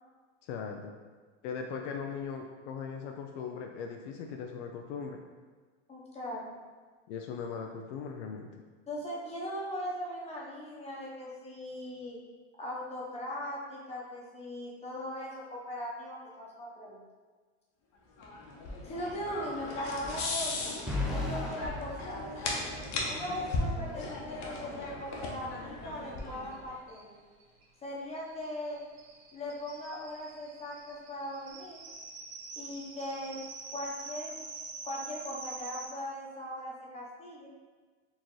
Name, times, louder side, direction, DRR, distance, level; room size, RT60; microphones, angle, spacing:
voice 1, 0.4-0.9 1.4-5.2 7.1-8.6, left 6 dB, 80° left, 2 dB, 0.5 m, -39 dB
voice 2, 5.9-6.5 8.9-12.2 12.6-17.0 18.8-20.8 21.1-22.2 23.1-27.2 27.8-28.8 29.3-31.8 32.6-33.4 33.7-34.4 34.8-37.5, equal, 20° left, -4 dB, 0.8 m, -39 dB
sound 1, 18.2-26.7, left 2 dB, 50° left, 0.9 m, -37 dB
sound 2, 20.9-23.0, left 2 dB, ahead, 0.4 m, -36 dB
sound 3, 26.2-26.3 26.5-26.6 26.9-35.9, right 3 dB, 70° right, 1.1 m, -46 dB
4.4 x 2.9 x 3.1 m, 1.4 s
supercardioid pair, 125°, 34 cm